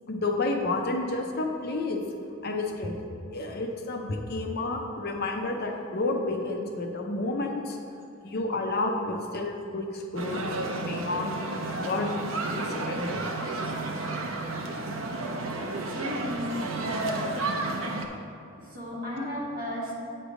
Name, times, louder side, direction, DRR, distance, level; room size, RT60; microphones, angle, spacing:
voice 1, 0.1-2.0 2.4-3.0 3.3-7.8 8.2-10.4 10.8-11.4 11.7-12.1 12.4-13.3 19.2-19.3, left 2 dB, 50° left, 3 dB, 0.6 m, -30 dB
sound 1, 10.2-18.1, right 2 dB, 75° right, 0.7 m, -32 dB
voice 2, 15.9-17.3 17.6-17.7 18.6-19.9, equal, 45° right, -6 dB, 1.8 m, -33 dB
8.7 x 3.3 x 6.3 m, 2.6 s
head